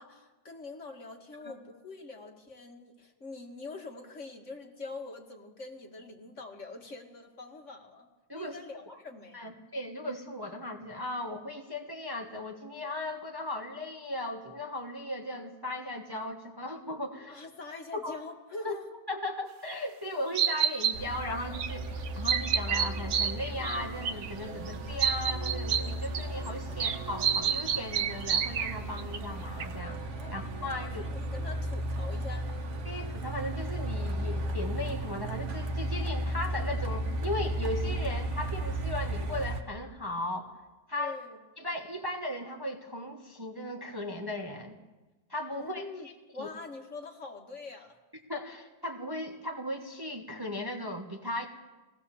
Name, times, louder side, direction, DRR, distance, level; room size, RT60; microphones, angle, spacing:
voice 1, 0.0-8.1 8.3-9.5 17.3-18.9 30.2-32.5 40.9-41.4 45.5-46.1 46.3-48.0, left 3 dB, 45° left, 2 dB, 2.3 m, -44 dB
voice 2, 9.3-17.4 17.9-18.2 18.6-18.8 19.1-31.1 32.8-40.5 40.9-41.2 41.6-44.8 45.3-45.8 46.4-46.5 48.3-51.5, left 1 dB, 15° right, 2 dB, 1.3 m, -37 dB
sound 1, 19.7-19.8 20.3-20.9 21.5-21.7 22.0-23.8 24.0-24.3 24.7-24.8 25.0-26.5 26.8-29.2 29.6-29.7, right 8 dB, 65° right, 1.3 m, -28 dB
Truck, 20.9-39.6, right 1 dB, 50° right, 1.6 m, -35 dB
21.5 x 17.5 x 7.2 m, 1.2 s
omnidirectional pair, 1.7 m